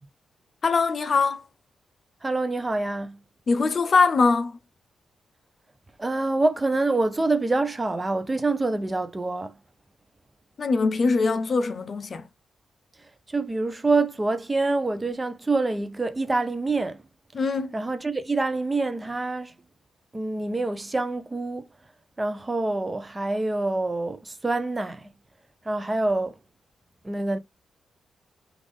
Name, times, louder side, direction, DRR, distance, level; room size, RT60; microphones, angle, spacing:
voice 1, 0.6-1.4 3.5-4.6 10.6-12.3 17.3-17.7, left 4 dB, 45° left, 0.5 m, -22 dB
voice 2, 2.2-3.2 6.0-9.5 13.0-17.0 17.7-19.5 20.1-21.7 22.2-25.1 25.6-26.4 27.0-27.4, right 2 dB, 20° right, 0.5 m, -26 dB
3.5 x 2.5 x 3.4 m
cardioid pair, 90°, 0 cm